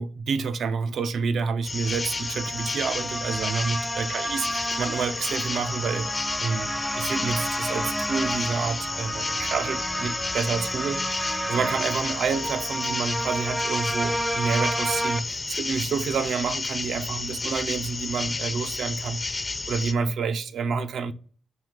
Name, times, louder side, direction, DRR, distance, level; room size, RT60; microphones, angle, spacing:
voice 1, 0.0-6.1 6.4-6.7 7.0-19.4 19.7-21.1, right 5 dB, 70° right, 0.4 m, -28 dB
sound 1, 1.6-19.9, left 3 dB, 40° left, 0.6 m, -32 dB
sound 2, 1.8-15.2, right 1 dB, 5° right, 0.5 m, -31 dB
4.7 x 2.8 x 3.7 m
supercardioid pair, 45°, 0 cm